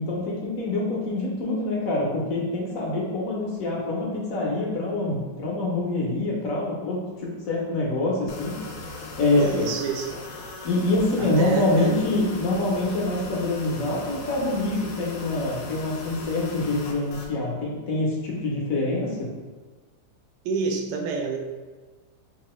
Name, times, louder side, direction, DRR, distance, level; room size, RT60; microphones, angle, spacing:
voice 1, 0.0-8.6 9.2-9.7 10.6-19.3, left 2 dB, 65° left, -3 dB, 1.0 m, -25 dB
sound 1, 8.3-17.3, left 3 dB, 90° left, 1.2 m, -38 dB
voice 2, 9.4-10.2 11.2-11.9 20.4-21.4, right 5 dB, 75° right, 2 dB, 1.1 m, -28 dB
3.6 x 2.5 x 3.0 m, 1.3 s
omnidirectional pair, 1.9 m